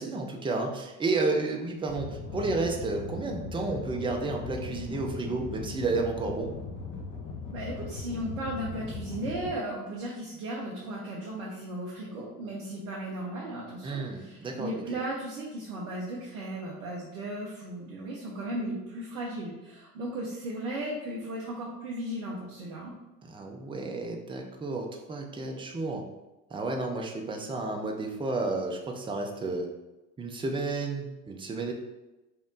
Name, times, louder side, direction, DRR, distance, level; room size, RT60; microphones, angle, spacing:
voice 1, 0.0-6.5 13.8-15.0 23.2-26.0 26.5-29.7 30.2-31.7, right 3 dB, 10° right, 1 dB, 0.6 m, -31 dB
sound 1, 1.9-9.5, left 4 dB, 55° left, 1.0 m, -39 dB
voice 2, 7.5-22.9, right 1 dB, 65° right, -4 dB, 0.9 m, -36 dB
5.6 x 2.2 x 3.8 m, 1.0 s
figure-of-eight pair, 60°, 46 cm